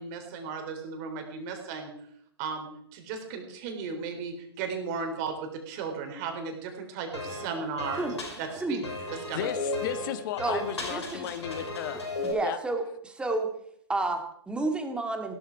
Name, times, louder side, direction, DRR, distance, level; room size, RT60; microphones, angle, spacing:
voice 1, 0.0-1.9 2.4-8.0 8.4-8.8 9.1-9.5, right 5 dB, 40° right, 4 dB, 4.0 m, -35 dB
sound 1, 7.1-12.3, left 2 dB, 80° left, 6.3 m, -35 dB
voice 2, 9.3-12.6, left 10 dB, 45° left, 12 dB, 1.4 m, -35 dB
voice 3, 10.4-11.3 12.2-13.5 13.9-15.4, right 2 dB, 5° right, 5 dB, 2.1 m, -31 dB
17.0 x 13.0 x 4.8 m, 0.67 s
figure-of-eight pair, 120°, 14 cm